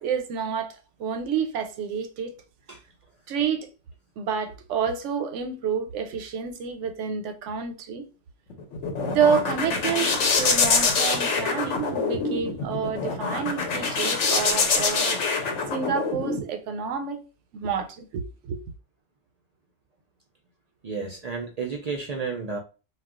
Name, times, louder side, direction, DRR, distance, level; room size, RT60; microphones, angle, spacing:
voice 1, 0.0-2.4 3.3-3.7 4.2-8.1 9.0-15.2 15.7-17.2 17.5-18.6, right 6 dB, 90° right, 0.9 m, -29 dB
sound 1, 8.5-16.4, left 4 dB, 85° left, 1.0 m, -25 dB
voice 2, 20.8-22.6, right 5 dB, 65° right, 0.4 m, -31 dB
2.3 x 2.1 x 3.5 m
omnidirectional pair, 1.2 m